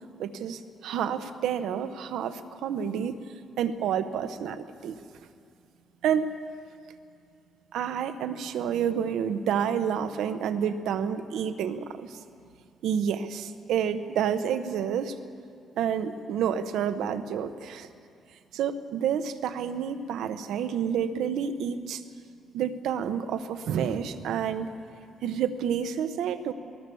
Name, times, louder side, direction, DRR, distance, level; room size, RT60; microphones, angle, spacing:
voice 1, 0.2-3.2 3.6-5.0 6.0-6.3 7.7-12.2 12.8-15.1 15.8-17.9 18.5-22.0 22.5-24.7 25.2-26.5, right 8 dB, 80° right, 10 dB, 1.0 m, -29 dB
19.5 x 19.5 x 7.0 m, 2.4 s
cardioid pair, 165°, 0 cm